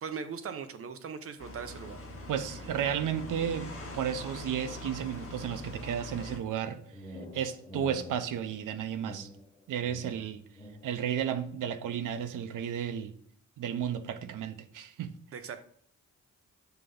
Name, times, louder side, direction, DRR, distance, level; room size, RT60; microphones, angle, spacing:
voice 1, 0.0-2.0 15.3-15.6, right 6 dB, 45° right, 0.7 m, -39 dB
sound 1, 1.4-6.4, left 1 dB, 45° left, 1.8 m, -43 dB
voice 2, 2.3-6.8 7.1-9.3 9.7-10.4 10.8-13.1 13.6-15.1, right 9 dB, 85° right, 0.6 m, -33 dB
sound 2, 6.4-11.1, left 1 dB, 20° left, 1.7 m, -47 dB
5.9 x 3.4 x 5.1 m
wide cardioid pair, 170°, 31 cm